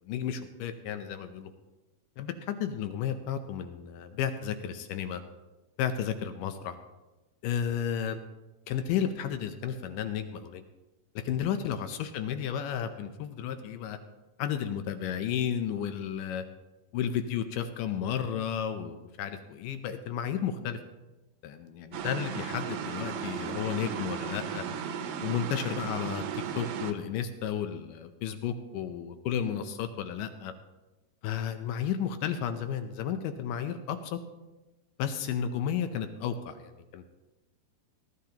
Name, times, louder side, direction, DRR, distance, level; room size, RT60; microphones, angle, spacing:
voice 1, 0.1-1.5 2.2-5.2 5.8-6.8 7.4-8.2 8.7-10.6 11.2-14.0 14.4-16.4 16.9-20.8 21.4-24.6 25.2-26.2 26.6-30.5 31.2-34.2 35.0-37.0, left 8 dB, 80° left, 9 dB, 2.0 m, -33 dB
sound 1, 21.9-26.9, right 7 dB, 75° right, 2.5 m, -35 dB
19.0 x 12.5 x 2.9 m, 1.1 s
omnidirectional pair, 4.5 m